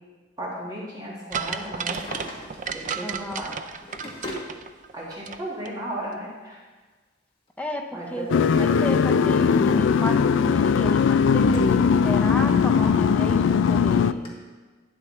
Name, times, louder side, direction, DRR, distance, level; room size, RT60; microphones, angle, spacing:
voice 1, 0.4-2.3 2.7-3.5 4.9-6.6 7.9-8.6, right 1 dB, 20° right, -6 dB, 1.7 m, -35 dB
sound 1, 1.3-5.4 5.7-5.8, right 6 dB, 40° right, 0.4 m, -33 dB
Drawer open or close, 1.7-2.8 3.6-4.5 5.6-5.7 7.5-9.0 9.3-9.7 10.2-11.9 12.3-12.4 13.1-13.2 13.5-13.6 14.2-14.3, left 1 dB, 30° left, 1.8 m, -41 dB
voice 2, 3.0-3.4 7.6-11.8 12.0-14.3, left 1 dB, 5° left, 2 dB, 0.7 m, -33 dB
sound 2, 8.3-14.1, left 6 dB, 70° left, 0.3 m, -19 dB
12.0 x 9.7 x 3.2 m, 1.4 s
head